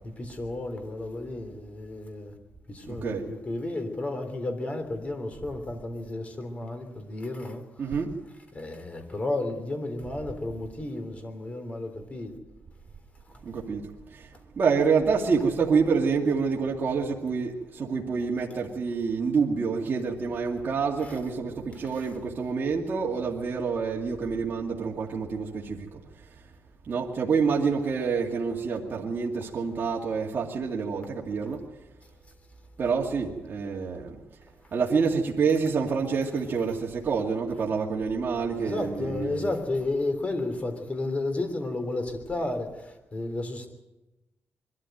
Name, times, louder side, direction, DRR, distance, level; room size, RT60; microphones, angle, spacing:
voice 1, 0.0-2.3 2.7-8.0 8.5-12.4 13.3-13.4 21.0-21.1 21.7-22.1 34.6-34.7 38.6-43.7, left 2 dB, 30° left, 3.4 m, -32 dB
voice 2, 2.9-3.2 7.8-8.1 13.4-14.3 14.6-26.0 26.9-31.7 32.8-34.2 34.7-39.5, right 5 dB, 45° right, 2.3 m, -27 dB
22.5 x 13.0 x 9.3 m
cardioid pair, 125°, 5 cm